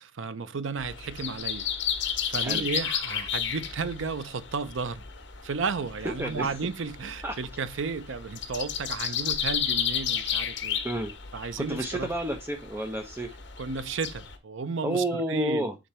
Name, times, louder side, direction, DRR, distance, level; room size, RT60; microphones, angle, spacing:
voice 1, 0.0-1.7 2.0-5.0 5.4-10.8 11.3-12.1 13.6-15.7, right 4 dB, 70° right, 0.6 m, -33 dB
sound 1, 0.8-14.4, left 8 dB, 60° left, 1.2 m, -33 dB
voice 2, 11.6-13.3 14.8-15.7, right 1 dB, 10° right, 0.6 m, -30 dB
7.1 x 3.8 x 4.3 m
head